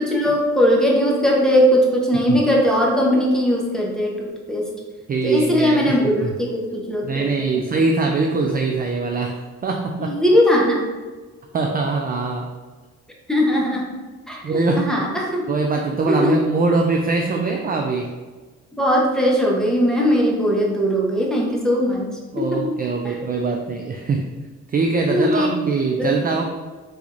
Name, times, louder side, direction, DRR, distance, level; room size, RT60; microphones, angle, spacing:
voice 1, 0.0-4.7 5.2-7.5 10.0-10.9 13.3-13.9 14.3-14.4 14.8-15.5 16.1-16.4 18.7-22.1 22.4-22.6 25.1-25.5 26.0-26.1, equal, ahead, -2 dB, 0.8 m, -19 dB
voice 2, 5.1-6.0 6.2-6.4 7.0-10.2 11.5-12.5 14.4-14.9 15.5-18.1 22.3-24.3 24.7-26.4, right 3 dB, 30° right, 2 dB, 0.4 m, -22 dB
3.4 x 3.3 x 2.5 m, 1.4 s
cardioid pair, 70°, 32 cm